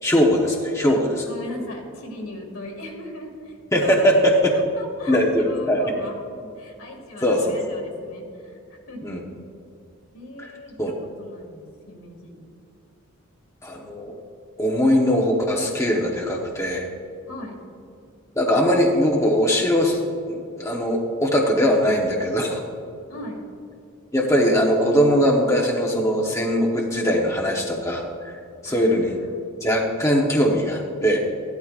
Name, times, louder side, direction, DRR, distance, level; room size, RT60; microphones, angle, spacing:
voice 1, 0.0-1.2 3.7-4.6 5.1-5.8 7.2-7.6 9.0-9.2 10.4-10.5 10.8-10.9 13.6-14.2 14.6-16.9 18.3-22.6 24.1-28.4 28.6-29.2 29.6-31.2, equal, 15° left, -1 dB, 0.8 m, -20 dB
voice 2, 0.9-9.2 10.1-12.6 17.3-17.6 23.1-23.5 28.7-29.2, left 1 dB, 80° left, 0 dB, 2.0 m, -39 dB
14.5 x 12.0 x 2.4 m, 2.4 s
head